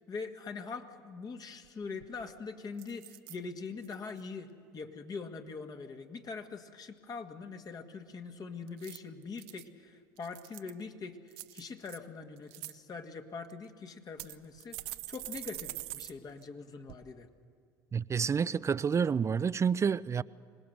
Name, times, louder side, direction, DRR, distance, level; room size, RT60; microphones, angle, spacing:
voice 1, 0.1-11.2 11.5-17.3, left 4 dB, 40° left, 1.8 m, -43 dB
sound 1, 1.6-1.7 2.0-2.3 2.8-3.4 3.8-4.2 8.7-9.7 10.2-10.8 11.3-12.0 12.4-12.7 13.5-13.6 14.2-16.1 16.4-16.5 16.9-17.0, right 17 dB, 70° right, 0.8 m, -44 dB
voice 2, 17.9-20.2, right 6 dB, 30° right, 0.4 m, -29 dB
26.0 x 19.0 x 6.7 m
hypercardioid pair, 70°, 10 cm